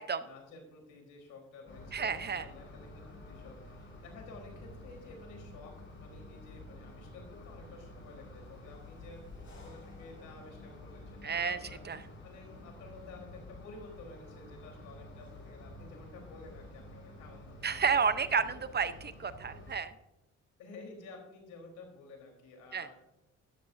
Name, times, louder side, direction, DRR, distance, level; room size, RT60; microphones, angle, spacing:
voice 1, 0.2-11.8 12.2-18.6 19.5-19.6 20.6-23.0, left 3 dB, 85° left, 2 dB, 3.8 m, -52 dB
sound 1, 1.7-19.7, left 1 dB, 40° left, 4.8 m, -50 dB
voice 2, 1.9-2.5 11.2-11.6 11.8-12.0 17.6-19.9 22.7-22.9, right 6 dB, 35° right, 12 dB, 0.8 m, -31 dB
13.0 x 12.5 x 2.6 m, 0.90 s
cardioid pair, 90°, 30 cm